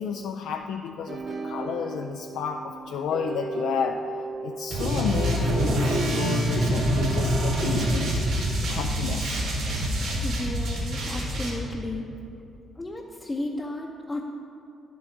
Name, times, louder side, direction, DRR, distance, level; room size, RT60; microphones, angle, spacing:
voice 1, 0.0-4.0 4.4-8.2 8.7-9.4, left 7 dB, 85° left, 4 dB, 0.3 m, -31 dB
sound 1, 1.1-6.2, right 4 dB, 40° right, 0.7 m, -36 dB
sound 2, 4.7-11.5, right 1 dB, 85° right, 2.4 m, -25 dB
voice 2, 10.2-12.1 12.8-14.2, left 1 dB, 20° left, -1 dB, 0.6 m, -34 dB
9.9 x 7.8 x 3.9 m, 2.6 s
cardioid pair, 90°, 0 cm